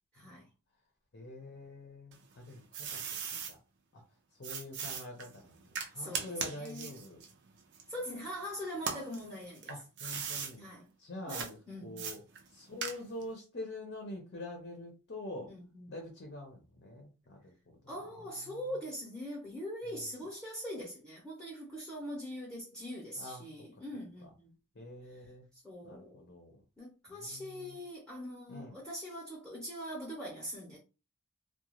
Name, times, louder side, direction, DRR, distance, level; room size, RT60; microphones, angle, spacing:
voice 1, 0.1-0.5 5.9-7.0 7.9-9.7 10.6-10.9 11.3-12.1 15.5-15.9 17.9-24.5 25.0-26.2 26.8-30.8, equal, 5° left, 0.8 m, -42 dB
voice 2, 1.1-3.0 3.3-3.6 3.9-4.0 4.4-7.2 9.7-10.6 11.0-12.2 12.5-15.5 15.9-17.5 18.4-18.6 20.0-20.1 23.2-23.4 24.7-25.5 25.8-26.6 27.1-27.8 28.5-28.8, left 1 dB, 50° left, 0.7 m, -45 dB
sound 1, 2.1-3.5 4.4-8.3 8.7-10.5 11.3-11.5 12.0-13.3, right 6 dB, 50° right, 0.5 m, -39 dB
2.4 x 2.2 x 2.9 m
head